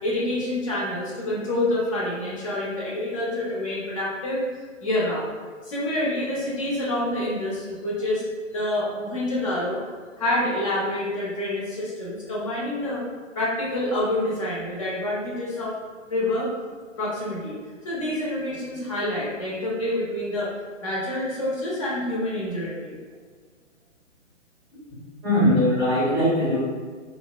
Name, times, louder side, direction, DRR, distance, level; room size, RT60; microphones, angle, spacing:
voice 1, 0.0-4.4 4.8-5.3 5.6-8.2 8.5-13.0 13.3-15.8 16.1-16.5 17.0-17.6 17.8-20.5 20.8-23.0, left 1 dB, 25° left, -6 dB, 0.6 m, -27 dB
voice 2, 25.2-26.6, left 1 dB, 10° right, -11 dB, 0.8 m, -20 dB
3.4 x 2.0 x 2.3 m, 1.5 s
figure-of-eight pair, 130°, 39 cm